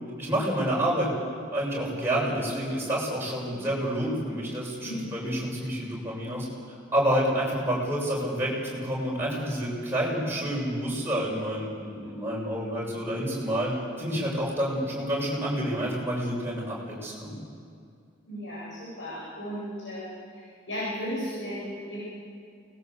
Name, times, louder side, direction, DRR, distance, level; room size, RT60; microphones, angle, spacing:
voice 1, 0.2-1.1 1.5-17.3, equal, 10° right, -4 dB, 6.8 m, -29 dB
voice 2, 4.8-5.3 18.3-22.0, equal, 75° left, -8 dB, 8.0 m, -35 dB
24.5 x 20.5 x 8.1 m, 2.4 s
head